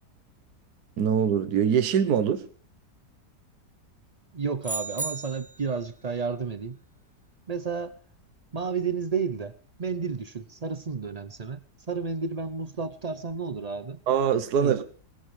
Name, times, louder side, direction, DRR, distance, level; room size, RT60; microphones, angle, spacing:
voice 1, 1.0-2.4 14.1-14.8, right 8 dB, 70° right, 1.5 m, -23 dB
voice 2, 4.3-6.8 7.5-8.0 8.5-14.0 14.6-14.8, right 5 dB, 55° right, 0.4 m, -32 dB
sound 1, 4.6-5.7, right 3 dB, 5° right, 0.6 m, -34 dB
19.5 x 16.5 x 3.3 m
omnidirectional pair, 1.8 m